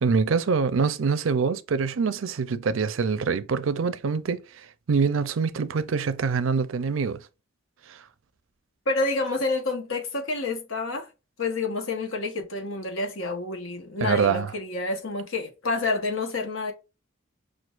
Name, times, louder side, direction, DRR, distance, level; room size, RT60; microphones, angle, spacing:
voice 1, 0.0-7.2 7.9-8.0 14.0-14.5, right 5 dB, 75° right, 0.5 m, -25 dB
voice 2, 8.9-11.1 11.4-16.7, left 3 dB, 85° left, 1.2 m, -28 dB
6.0 x 2.5 x 2.4 m
head